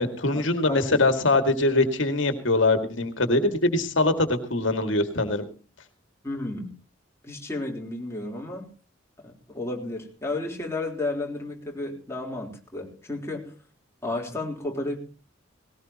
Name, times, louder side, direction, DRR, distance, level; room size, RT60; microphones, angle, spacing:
voice 1, 0.0-5.5, left 2 dB, 70° left, 7 dB, 2.1 m, -23 dB
voice 2, 0.7-1.0 6.2-6.7 7.2-8.7 9.2-13.5 14.0-15.0, left 2 dB, 15° left, -1 dB, 3.7 m, -32 dB
19.5 x 18.0 x 2.9 m, 0.36 s
head